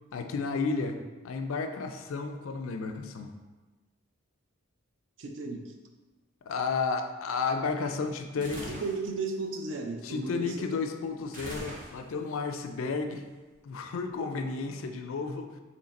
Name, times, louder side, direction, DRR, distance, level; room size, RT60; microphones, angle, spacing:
voice 1, 0.1-1.0 1.2-3.3 6.5-8.7 10.0-13.2 13.6-15.5, left 4 dB, 80° left, 6 dB, 0.4 m, -32 dB
voice 2, 5.2-5.7 8.3-10.8, right 3 dB, 65° right, 3 dB, 0.4 m, -35 dB
sound 1, 8.4-9.0 11.3-12.3, equal, 40° right, 0.9 m, -41 dB
3.2 x 3.0 x 4.0 m, 1.2 s
head